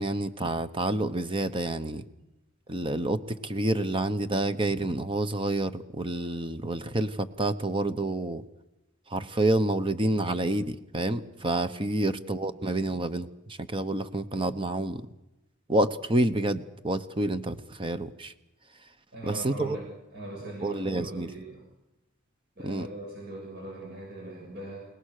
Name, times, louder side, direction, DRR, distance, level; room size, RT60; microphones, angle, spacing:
voice 1, 0.0-2.0 2.7-8.4 9.1-15.0 15.7-18.3 19.3-19.8 20.6-21.3 22.6-22.9, right 1 dB, 25° right, 11 dB, 1.0 m, -28 dB
voice 2, 19.1-19.9 20.1-21.6 22.6-24.9, right 1 dB, 55° right, -2 dB, 7.1 m, -40 dB
29.5 x 18.5 x 6.7 m, 0.94 s
head